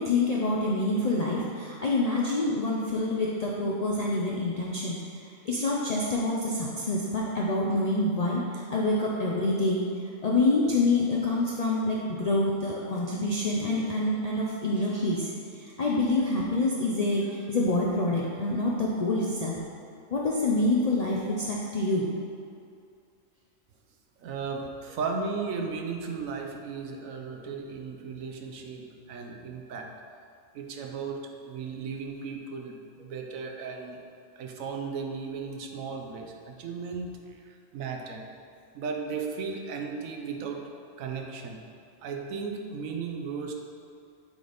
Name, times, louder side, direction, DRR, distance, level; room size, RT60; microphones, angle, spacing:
voice 1, 0.0-5.0 5.5-9.8 10.2-15.3 15.6-19.6 20.1-22.1, left 2 dB, 55° left, -4 dB, 0.4 m, -26 dB
voice 2, 24.2-29.9 30.5-34.1 34.4-37.2 37.5-38.2 38.7-40.6 41.0-41.6 42.0-43.5, right 5 dB, 80° right, 2 dB, 1.1 m, -35 dB
8.0 x 4.0 x 3.4 m, 2.4 s
omnidirectional pair, 1.4 m